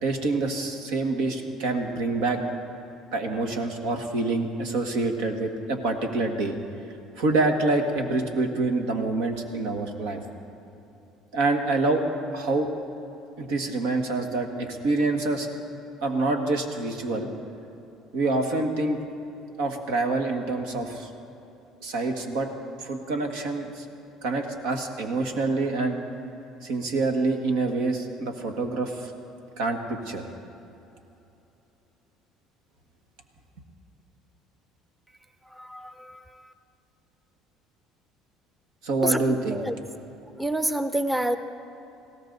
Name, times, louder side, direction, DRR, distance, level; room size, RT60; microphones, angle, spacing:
voice 1, 0.0-2.4 3.1-6.6 7.2-10.2 11.3-12.0 12.3-12.7 13.4-15.5 16.0-17.3 18.1-19.0 19.6-21.1 21.8-22.5 22.8-23.9 24.2-26.0 26.6-29.1 29.6-30.2 38.8-39.6, right 3 dB, 80° right, 4 dB, 1.6 m, -26 dB
voice 2, 35.5-36.2 39.0-39.7 40.4-41.4, right 1 dB, 10° right, 10 dB, 0.8 m, -28 dB
20.0 x 17.0 x 4.0 m, 2.9 s
supercardioid pair, 80°, 0 cm